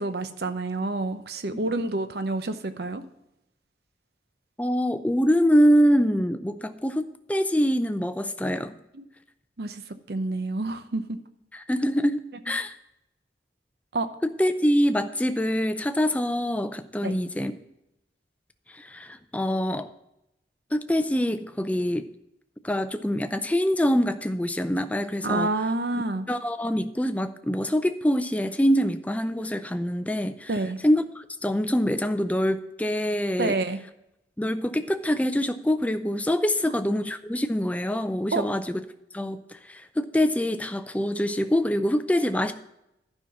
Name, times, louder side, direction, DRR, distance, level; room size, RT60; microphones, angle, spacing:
voice 1, 0.0-3.0 8.9-9.1 9.6-9.8 10.1-11.2 13.9-14.1 17.0-17.2 25.2-26.3 30.5-30.8 33.4-33.8 36.7-36.8 38.3-38.5, right 2 dB, 60° right, 10 dB, 0.7 m, -28 dB
voice 2, 4.6-8.8 11.5-12.7 14.2-17.5 18.7-19.9 20.7-22.1 22.6-25.5 26.3-30.5 30.8-33.5 34.4-38.8 39.1-42.5, equal, 10° left, 10 dB, 0.5 m, -25 dB
11.5 x 5.7 x 5.9 m, 0.84 s
head